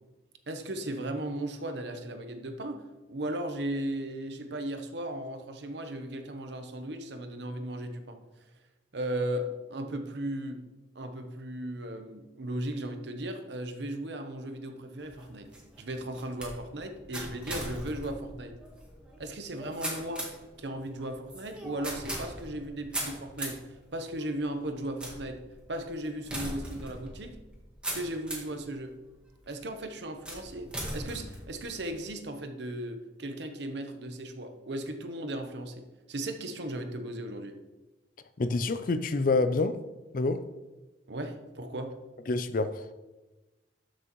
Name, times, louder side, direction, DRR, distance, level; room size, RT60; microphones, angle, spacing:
voice 1, 0.5-8.2 8.9-10.6 10.9-15.5 15.8-18.5 19.2-20.3 20.6-23.6 23.9-25.4 25.7-27.4 27.9-29.0 29.5-30.7 30.9-37.6 41.1-42.0, right 1 dB, 70° right, 0.9 m, -36 dB
sound 1, 15.0-28.6 29.2-29.6 30.2-32.1, right 1 dB, 5° right, 1.6 m, -40 dB
voice 2, 38.4-39.8 40.1-40.4 42.3-42.9, left 3 dB, 50° left, 0.5 m, -27 dB
12.5 x 6.2 x 3.1 m
head